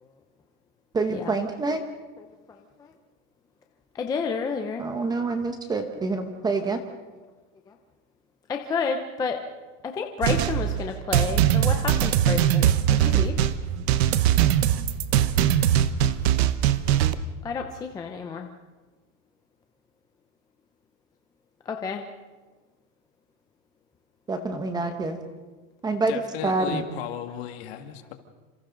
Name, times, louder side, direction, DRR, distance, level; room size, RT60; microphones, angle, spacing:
voice 1, 0.9-1.8 4.8-6.8 24.3-25.2 25.8-26.8, right 3 dB, 10° right, 7 dB, 1.0 m, -27 dB
voice 2, 2.2-2.6 3.9-4.8 8.5-9.4 9.8-13.4 17.4-18.5 21.7-22.0 26.4-26.5 27.5-27.6, left 5 dB, 10° left, 4 dB, 0.6 m, -30 dB
sound 1, 10.2-17.2, right 10 dB, 55° right, 1.1 m, -21 dB
voice 3, 26.1-28.1, left 11 dB, 50° left, 6 dB, 2.1 m, -36 dB
29.0 x 26.5 x 3.9 m, 1.3 s
supercardioid pair, 170°, 39 cm